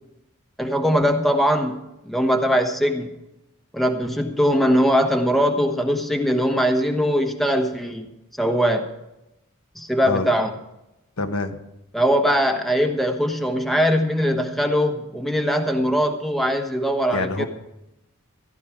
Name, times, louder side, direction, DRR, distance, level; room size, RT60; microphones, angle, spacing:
voice 1, 0.6-1.8 2.1-3.1 3.7-8.1 8.4-8.8 9.8-10.5 11.9-17.5, equal, ahead, 4 dB, 1.1 m, -21 dB
voice 2, 11.2-11.6 17.1-17.5, left 3 dB, 85° left, 6 dB, 1.1 m, -25 dB
15.0 x 12.0 x 4.9 m, 0.91 s
head